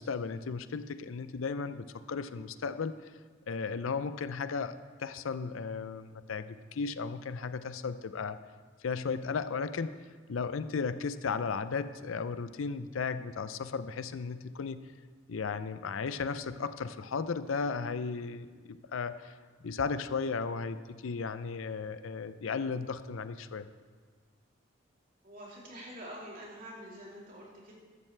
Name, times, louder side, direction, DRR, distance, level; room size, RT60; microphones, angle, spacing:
voice 1, 0.0-3.1 3.5-4.7 5.0-8.4 8.8-9.9 10.3-14.8 15.3-23.7, left 5 dB, 80° left, 12 dB, 0.5 m, -35 dB
voice 2, 25.2-27.7, equal, 45° right, -4 dB, 3.1 m, -46 dB
14.5 x 12.0 x 3.3 m, 1.5 s
head